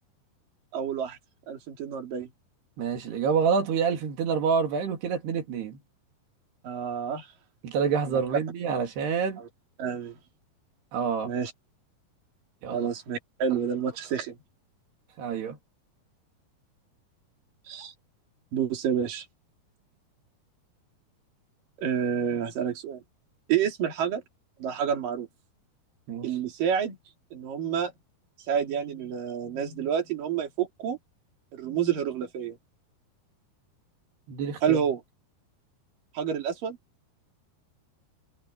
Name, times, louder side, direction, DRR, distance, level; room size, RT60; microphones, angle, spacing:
voice 1, 0.7-1.2 1.5-2.3 6.6-7.3 9.4-9.5 9.8-10.2 11.2-11.5 12.7-14.4 17.7-17.9 18.5-19.3 21.8-23.0 23.5-24.2 24.6-25.3 26.2-27.0 27.3-27.9 28.5-31.0 31.5-32.6 34.6-35.0 36.1-36.8, right 8 dB, 60° right, 4.8 m, -29 dB
voice 2, 2.8-5.8 7.6-9.4 10.9-11.3 12.6-12.9 15.2-15.6 26.1-26.3 34.3-34.8, right 6 dB, 90° right, 4.8 m, -27 dB
omnidirectional pair, 4.6 m